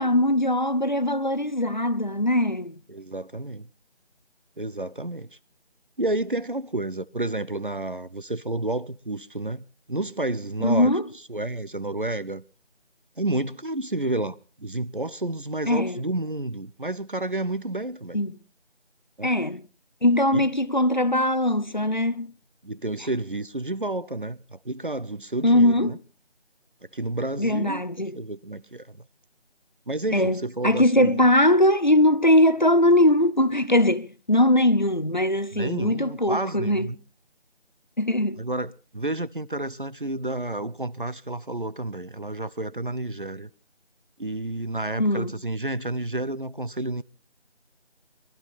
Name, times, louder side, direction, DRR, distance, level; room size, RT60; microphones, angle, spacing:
voice 1, 0.0-2.8 10.6-11.0 15.7-16.0 18.1-18.4 19.2-19.6 20.0-22.3 25.4-26.0 27.4-28.2 30.1-36.9 38.0-38.4 45.0-45.3, left 1 dB, 45° left, 0.8 m, -21 dB
voice 2, 2.9-3.7 4.6-5.3 6.0-11.0 11.3-12.4 13.2-18.2 19.2-19.3 20.3-20.5 22.6-26.0 26.9-27.8 28.1-29.0 29.9-31.3 35.5-37.0 38.4-43.5 44.2-47.0, right 2 dB, 50° right, 0.8 m, -30 dB
22.5 x 13.0 x 4.2 m
figure-of-eight pair, 180°, 34 cm